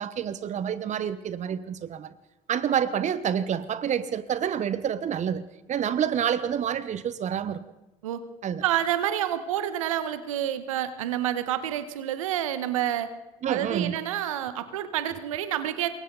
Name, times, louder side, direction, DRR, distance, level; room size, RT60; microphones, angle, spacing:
voice 1, 0.0-2.1 2.5-7.6 8.4-8.6 13.4-14.0, right 8 dB, 45° right, 1.2 m, -28 dB
voice 2, 8.6-13.1 13.5-15.9, right 11 dB, 80° right, 1.5 m, -28 dB
27.5 x 22.5 x 4.2 m
hypercardioid pair, 55°, 17 cm